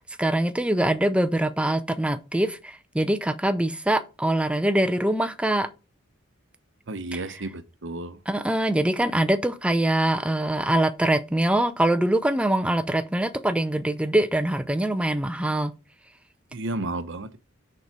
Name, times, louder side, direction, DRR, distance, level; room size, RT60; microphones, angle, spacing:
voice 1, 0.2-5.7 7.1-7.2 8.3-15.7, right 1 dB, 5° right, 0.5 m, -23 dB
voice 2, 6.9-8.2 16.5-17.4, right 2 dB, 60° right, 0.8 m, -32 dB
6.8 x 4.7 x 5.3 m
head